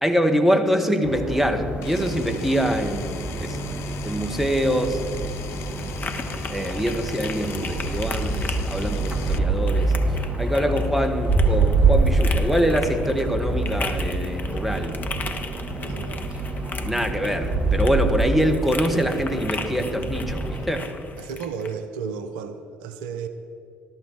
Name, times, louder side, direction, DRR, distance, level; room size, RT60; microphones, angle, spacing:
voice 1, 0.0-3.6 4.0-5.0 6.5-9.9 10.4-15.0 16.8-20.9, equal, ahead, 5 dB, 1.7 m, -24 dB
sound 1, 1.0-20.7, right 3 dB, 25° right, 2.5 m, -26 dB
Power tool, 1.8-9.4, left 9 dB, 60° left, 0.6 m, -41 dB
sound 2, 4.9-21.7, left 4 dB, 35° left, 1.3 m, -37 dB
voice 2, 15.8-16.2 21.2-23.3, right 6 dB, 70° right, 9 dB, 0.8 m, -33 dB
14.0 x 13.5 x 4.8 m, 2.5 s
figure-of-eight pair, 50°, 5 cm